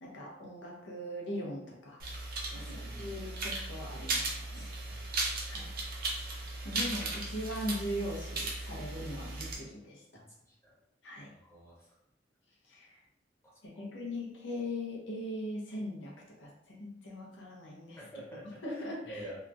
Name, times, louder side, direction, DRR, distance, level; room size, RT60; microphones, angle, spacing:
voice 1, 0.0-2.0 2.5-4.7 5.4-5.7 6.6-10.2 11.0-11.3 12.6-13.0 13.6-18.1 18.4-19.3, left 1 dB, 85° left, -2 dB, 0.8 m, -40 dB
sound 1, 2.0-9.6, right 2 dB, 55° right, 0.6 m, -37 dB
voice 2, 2.5-3.1 4.5-5.1 10.6-10.7 11.2-11.7 18.0-18.4 19.1-19.4, right 1 dB, 15° left, -5 dB, 0.8 m, -47 dB
2.9 x 2.3 x 2.5 m, 0.84 s
head